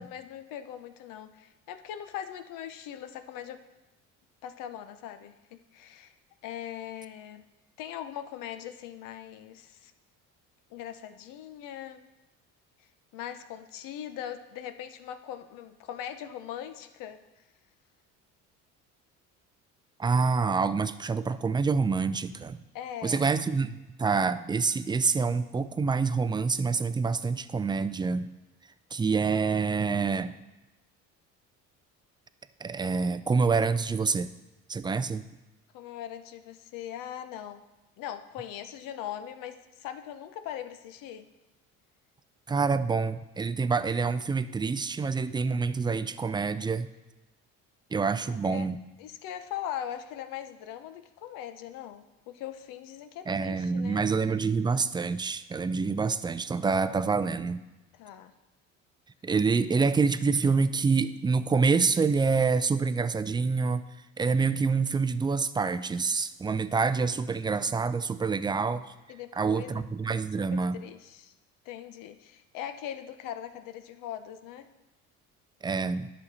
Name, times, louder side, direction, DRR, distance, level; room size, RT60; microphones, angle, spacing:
voice 1, 0.0-3.6 4.4-6.1 6.4-7.4 7.8-9.9 10.7-12.0 12.8-17.4 22.7-23.3 35.7-37.6 38.0-41.3 48.3-48.7 49.0-54.0 57.9-58.3 69.1-69.8 70.5-71.3 71.6-74.7, left 10 dB, 75° left, 10 dB, 0.8 m, -40 dB
voice 2, 20.0-22.6 23.0-28.3 28.9-30.4 32.6-34.3 34.7-35.2 42.5-46.9 47.9-48.8 53.3-57.6 59.2-63.9 64.2-68.9 69.4-70.8 75.6-76.1, right 4 dB, 15° right, 12 dB, 0.3 m, -27 dB
10.5 x 6.5 x 4.1 m, 1.0 s
supercardioid pair, 95°, 34 cm